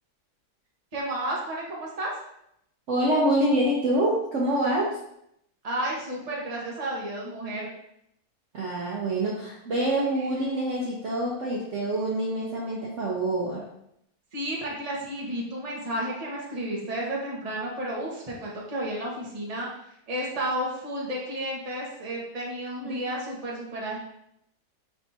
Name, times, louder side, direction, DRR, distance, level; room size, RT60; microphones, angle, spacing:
voice 1, 0.9-2.1 5.6-7.7 10.1-10.3 14.3-19.7 20.1-24.0, right 1 dB, 25° right, -4 dB, 1.0 m, -32 dB
voice 2, 2.9-4.9 8.5-13.6 22.8-22.9, right 1 dB, 55° right, -4 dB, 1.0 m, -26 dB
5.4 x 3.5 x 2.6 m, 0.76 s
omnidirectional pair, 1.7 m